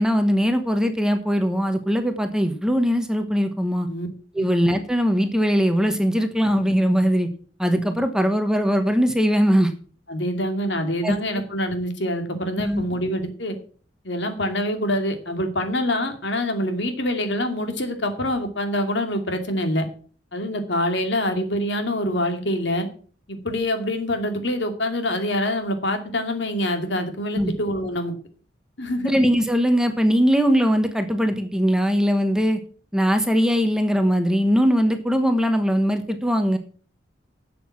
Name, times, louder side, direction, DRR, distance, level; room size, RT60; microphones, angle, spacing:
voice 1, 0.0-3.9 4.3-7.3 7.6-9.7 11.0-11.2 12.6-12.8 27.3-27.5 29.0-32.6 32.9-36.6, equal, 5° right, 7 dB, 1.2 m, -20 dB
voice 2, 10.1-13.6 14.0-19.9 20.3-22.9 23.3-28.1 28.8-29.1, left 1 dB, 65° left, 6 dB, 2.5 m, -25 dB
12.0 x 7.7 x 6.0 m, 0.43 s
head